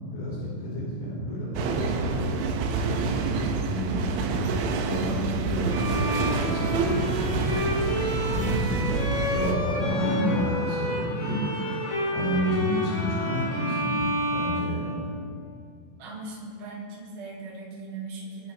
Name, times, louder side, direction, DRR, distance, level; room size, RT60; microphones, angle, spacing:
voice 1, 0.1-2.4 2.7-4.3 4.9-5.2 5.5-11.4 12.1-13.9 14.3-15.1, equal, 50° left, -7 dB, 6.7 m, -30 dB
sound 1, 1.6-9.5, right 4 dB, 75° right, 3.3 m, -28 dB
Bowed string instrument, 5.6-15.5, equal, 25° left, 3.2 m, -30 dB
Screaming, 9.5-14.3, left 7 dB, 80° left, 3.1 m, -42 dB
voice 2, 16.0-18.5, right 3 dB, 45° right, -6 dB, 4.1 m, -39 dB
26.0 x 12.0 x 3.5 m, 2.4 s
omnidirectional pair, 5.9 m